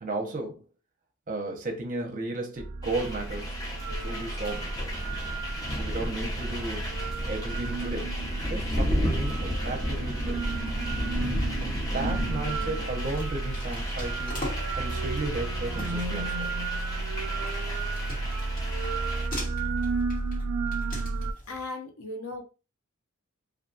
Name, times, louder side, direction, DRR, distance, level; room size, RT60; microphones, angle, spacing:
voice 1, 0.0-0.6 1.3-3.6 3.9-4.8 5.8-7.0 7.3-8.1 8.5-10.4 11.6-14.4 14.8-16.5, right 2 dB, 35° right, 0.6 m, -34 dB
sound 1, 2.6-21.3, right 3 dB, 80° right, 0.3 m, -32 dB
sound 2, 2.8-19.3, equal, 15° left, 0.5 m, -33 dB
sound 3, 13.0-14.9 15.4-15.5 15.8-21.5, left 1 dB, 40° left, 1.3 m, -41 dB
voice 2, 21.5-22.4, left 2 dB, 65° left, 0.6 m, -36 dB
2.4 x 2.3 x 2.5 m
head